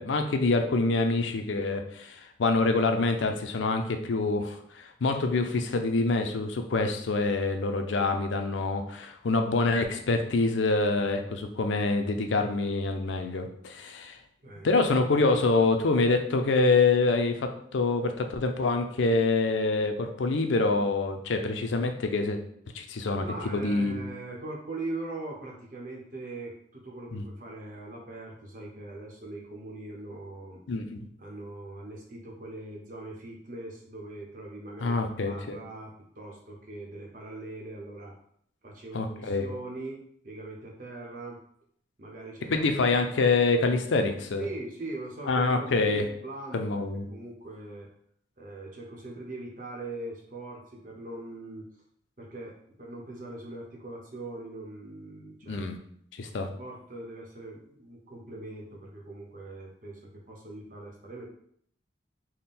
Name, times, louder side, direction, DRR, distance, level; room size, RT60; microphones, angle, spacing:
voice 1, 0.0-14.2 14.6-22.4 22.7-23.2 23.5-24.0 27.1-27.2 30.7-31.0 34.8-35.6 38.9-39.4 42.5-44.5 45.3-46.1 46.5-47.1 55.5-55.8 56.2-56.5, left 3 dB, 90° left, 6 dB, 0.5 m, -26 dB
voice 2, 23.2-30.6 31.2-38.1 38.6-41.4 42.0-42.7 44.4-47.9 48.4-51.7 52.2-55.7 56.3-61.2, right 2 dB, 45° right, -2 dB, 0.8 m, -41 dB
3.6 x 2.1 x 4.2 m, 0.66 s
head